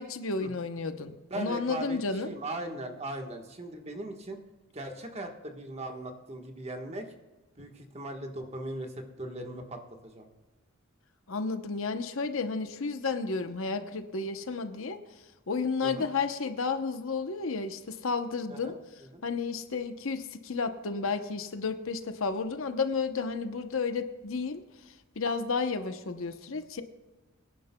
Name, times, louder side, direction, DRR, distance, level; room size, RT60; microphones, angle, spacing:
voice 1, 0.0-2.3 11.3-15.0 15.5-18.7 19.2-24.6 25.2-26.8, left 4 dB, 65° left, 8 dB, 0.8 m, -32 dB
voice 2, 1.3-4.4 4.7-7.0 7.6-10.3 15.8-16.1 18.5-18.8 19.1-19.2, right 1 dB, 30° right, 3 dB, 1.3 m, -39 dB
24.0 x 10.5 x 2.2 m, 1.1 s
head